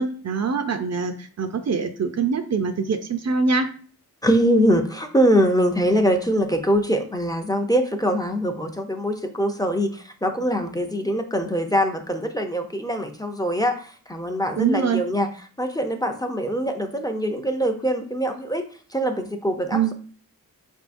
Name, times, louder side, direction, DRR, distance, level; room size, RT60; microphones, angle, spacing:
voice 1, 0.0-3.7 14.6-15.0 19.7-19.9, right 5 dB, 50° right, 7 dB, 0.5 m, -24 dB
voice 2, 4.2-15.3 15.6-19.9, equal, 10° left, 5 dB, 0.5 m, -23 dB
4.6 x 3.5 x 2.5 m, 0.43 s
wide cardioid pair, 80°, 35 cm